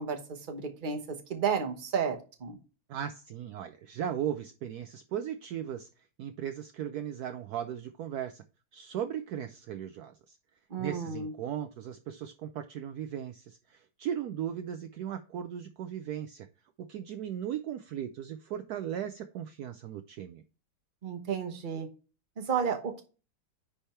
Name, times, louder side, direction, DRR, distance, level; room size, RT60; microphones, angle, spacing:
voice 1, 0.0-2.6 10.7-11.3 21.0-21.9 22.4-23.0, right 6 dB, 35° right, 4 dB, 0.8 m, -32 dB
voice 2, 2.9-8.4 8.7-10.4 10.8-16.5 16.9-20.4, right 9 dB, 80° right, 8 dB, 0.8 m, -37 dB
9.9 x 3.4 x 4.4 m, 0.34 s
omnidirectional pair, 2.2 m